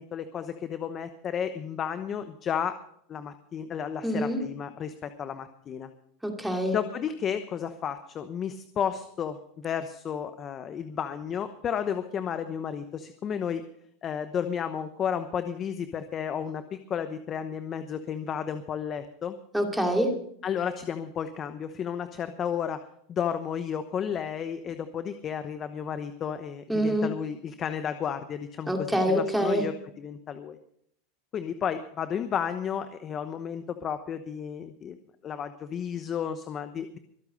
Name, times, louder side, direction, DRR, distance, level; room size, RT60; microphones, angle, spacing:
voice 1, 0.0-2.8 3.1-5.9 6.7-13.6 14.0-19.4 20.4-30.6 31.3-35.0 35.2-37.0, left 8 dB, 30° left, 10 dB, 1.0 m, -32 dB
voice 2, 4.0-4.4 6.2-6.8 19.5-20.1 26.7-27.1 28.7-29.7, equal, 5° right, 3 dB, 2.6 m, -25 dB
23.0 x 8.3 x 5.2 m, 0.67 s
supercardioid pair, 125°, 0 cm